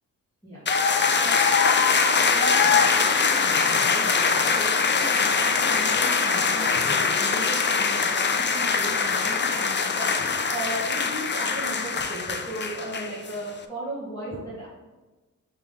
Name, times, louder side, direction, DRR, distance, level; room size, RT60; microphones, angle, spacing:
sound 1, 0.7-13.3, left 5 dB, 35° left, 0.5 m, -22 dB
voice 1, 1.1-14.7, right 2 dB, 10° left, -11 dB, 2.1 m, -37 dB
6.4 x 3.9 x 4.0 m, 1.2 s
wide cardioid pair, 115°, 33 cm